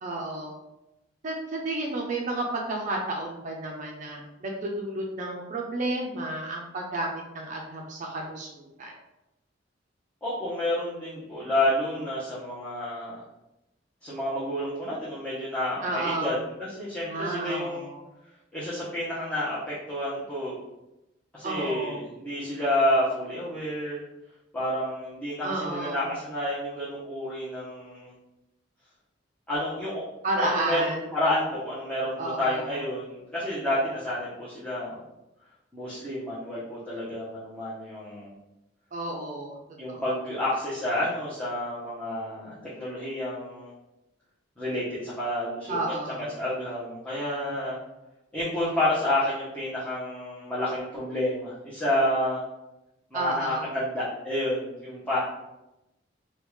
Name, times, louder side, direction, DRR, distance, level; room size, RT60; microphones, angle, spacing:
voice 1, 0.0-0.5 1.2-8.9 15.8-16.4 17.0-18.0 21.4-22.0 25.4-26.1 30.2-31.0 32.2-32.8 38.9-39.6 39.9-40.2 45.7-46.3 53.1-53.7, right 2 dB, 45° right, 0 dB, 0.4 m, -31 dB
voice 2, 10.2-13.2 14.0-17.9 18.5-20.6 21.3-24.0 24.5-28.1 29.5-30.0 30.4-35.0 35.7-38.3 39.8-43.7 44.6-47.8 48.3-52.4 53.1-55.2, left 1 dB, 5° left, -10 dB, 0.7 m, -29 dB
3.5 x 2.3 x 3.1 m, 0.94 s
head